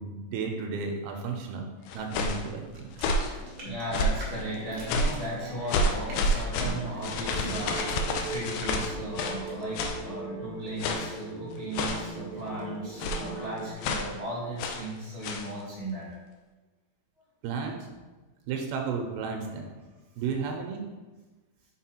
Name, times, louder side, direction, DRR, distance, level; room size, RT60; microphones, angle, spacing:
voice 1, 0.0-1.7 1.9-2.9 17.4-17.8 18.5-19.7 20.2-20.8, right 5 dB, 85° right, 3 dB, 2.8 m, -33 dB
sound 1, 1.9-2.5 2.9-3.4 3.9-4.3 4.9-5.3 5.7-9.4 9.8-10.0 10.8-11.2 11.7-12.2 13.0-13.3 13.8-14.1 14.6-14.9 15.2-15.5, left 1 dB, 85° left, 1.9 m, -29 dB
sound 2, 2.5-9.8, right 1 dB, 55° right, 1.4 m, -46 dB
voice 2, 3.2-16.1, right 1 dB, 55° left, -7 dB, 0.6 m, -36 dB
sound 3, 7.0-13.7, right 3 dB, 35° right, 1.3 m, -40 dB
6.4 x 4.1 x 4.5 m, 1.2 s
omnidirectional pair, 4.5 m